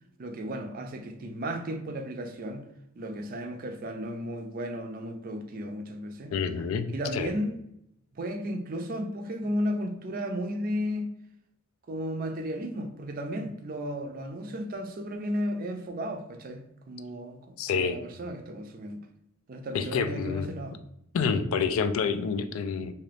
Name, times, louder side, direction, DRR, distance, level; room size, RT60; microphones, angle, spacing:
voice 1, 0.2-2.7 3.0-6.3 6.9-7.6 8.1-11.1 11.9-19.0 19.5-20.8, equal, 40° right, 0.4 m, -34 dB
voice 2, 6.3-7.3 17.6-18.0 19.7-20.5 21.1-22.9, left 5 dB, 75° left, 0.3 m, -28 dB
2.8 x 2.5 x 3.2 m
head